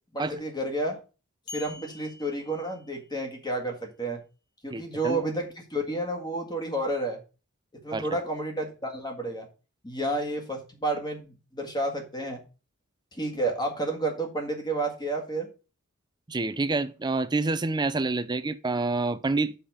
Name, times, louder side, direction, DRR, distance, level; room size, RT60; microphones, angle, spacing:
voice 1, 0.1-1.0 1.5-4.2 4.6-7.2 7.8-9.5 9.8-12.4 13.1-15.5, right 1 dB, 20° left, 1.8 m, -31 dB
sound 1, 1.5-3.3, left 3 dB, 45° left, 1.1 m, -46 dB
voice 2, 4.7-5.2 7.9-8.1 16.3-19.5, right 3 dB, 20° right, 0.4 m, -28 dB
5.7 x 5.1 x 6.7 m
head